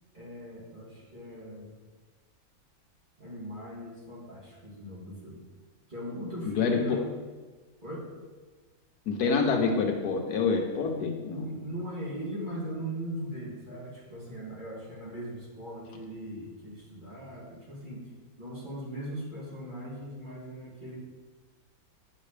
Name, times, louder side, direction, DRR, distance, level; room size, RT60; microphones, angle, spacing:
voice 1, 0.1-1.7 3.2-5.4 5.9-7.0 7.8-8.1 11.3-18.0 18.4-21.0, right 1 dB, 30° right, -7 dB, 2.5 m, -39 dB
voice 2, 6.5-7.0 9.1-11.5, left 5 dB, 85° left, 3 dB, 1.4 m, -27 dB
9.3 x 6.2 x 3.3 m, 1.3 s
omnidirectional pair, 1.6 m